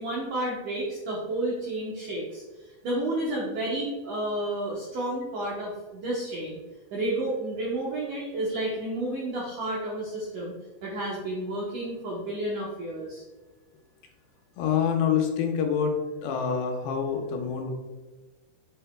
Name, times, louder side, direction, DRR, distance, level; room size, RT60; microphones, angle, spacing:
voice 1, 0.0-2.4 2.8-6.6 6.9-10.5 10.8-13.2, right 1 dB, 75° right, -4 dB, 1.8 m, -31 dB
voice 2, 14.6-16.0 16.2-17.7, left 7 dB, 80° left, 3 dB, 2.9 m, -26 dB
7.9 x 5.5 x 2.2 m, 1.2 s
omnidirectional pair, 5.0 m